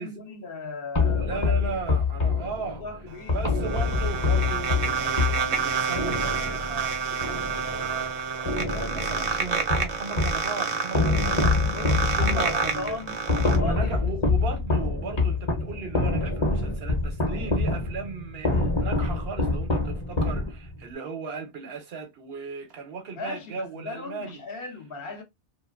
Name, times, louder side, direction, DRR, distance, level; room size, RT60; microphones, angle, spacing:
voice 1, 0.0-1.8 2.6-3.5 11.7-13.2 13.5-14.0 14.4-14.5 23.2-25.2, left 4 dB, 60° left, 0.8 m, -37 dB
sound 1, 1.0-8.1 8.5-10.5 10.9-20.9, left 3 dB, 30° left, 0.7 m, -26 dB
voice 2, 1.2-2.8 3.3-8.4 8.7-11.7 12.0-13.0 13.6-24.4, right 5 dB, 65° right, 0.9 m, -37 dB
sound 2, 3.1-13.6, right 6 dB, 50° right, 0.5 m, -29 dB
2.5 x 2.2 x 2.3 m
omnidirectional pair, 1.2 m